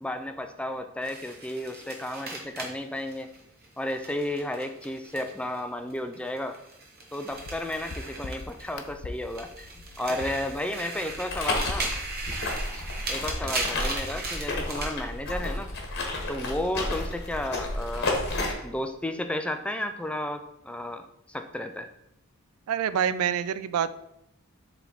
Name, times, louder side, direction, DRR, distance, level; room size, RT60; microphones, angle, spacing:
voice 1, 0.0-3.3 3.8-6.6 7.1-11.9 12.7-15.7 16.3-18.2 18.6-21.9, left 1 dB, 5° left, 7 dB, 0.3 m, -33 dB
sound 1, 1.0-5.6 5.9-8.9 9.2-14.9, right 3 dB, 45° right, 1.2 m, -37 dB
sound 2, 7.3-16.5, left 2 dB, 90° left, 0.6 m, -44 dB
sound 3, 11.3-18.5, left 2 dB, 50° left, 1.2 m, -31 dB
voice 2, 22.7-24.0, right 8 dB, 75° right, 15 dB, 0.3 m, -27 dB
7.3 x 3.4 x 3.9 m, 0.80 s
head